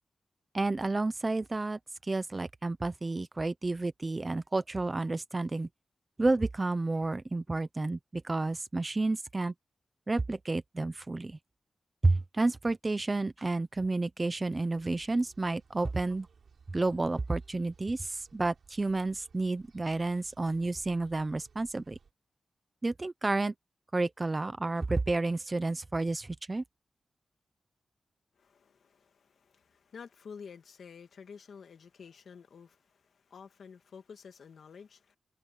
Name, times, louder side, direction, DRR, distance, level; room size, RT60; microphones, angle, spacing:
voice 1, 0.5-5.7 6.2-9.5 10.1-11.4 12.0-16.3 16.7-22.0 22.8-23.5 23.9-26.6, right 2 dB, 25° right, 0.9 m, -30 dB
sound 1, 14.7-22.1, right 5 dB, 65° right, 7.6 m, -60 dB
voice 2, 28.4-35.2, left 6 dB, 80° left, 2.2 m, -50 dB
wide cardioid pair, 150°, 0 cm